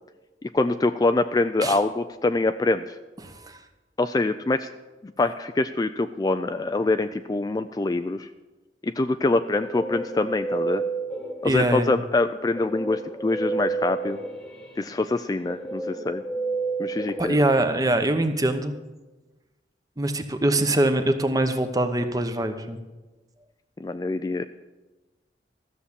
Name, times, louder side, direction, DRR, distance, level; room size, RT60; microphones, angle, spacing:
voice 1, 0.5-3.0 4.0-4.7 5.0-8.3 8.8-10.8 11.4-14.2 14.8-16.2 16.8-17.4 23.8-24.5, left 2 dB, 20° left, 9 dB, 0.3 m, -24 dB
voice 2, 3.2-3.6 11.4-11.9 17.2-18.7 20.0-22.8, right 1 dB, 20° right, 7 dB, 0.9 m, -23 dB
Guitar, 9.3-11.8 12.5-18.0, right 3 dB, 5° left, 1.3 m, -31 dB
14.0 x 7.2 x 8.2 m, 1.2 s
head